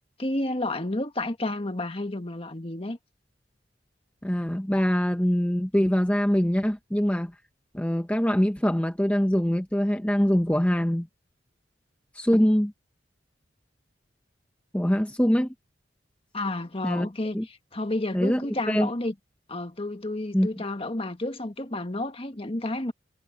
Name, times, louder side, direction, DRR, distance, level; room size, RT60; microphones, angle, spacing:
voice 1, 0.2-3.0 16.3-19.1 19.5-22.9, left 2 dB, 30° left, 1.6 m, -31 dB
voice 2, 4.2-7.3 7.7-11.1 12.1-12.7 14.7-15.5 16.8-17.1 17.3-17.5 18.1-18.9 20.3-20.5, equal, 5° left, 0.8 m, -23 dB
head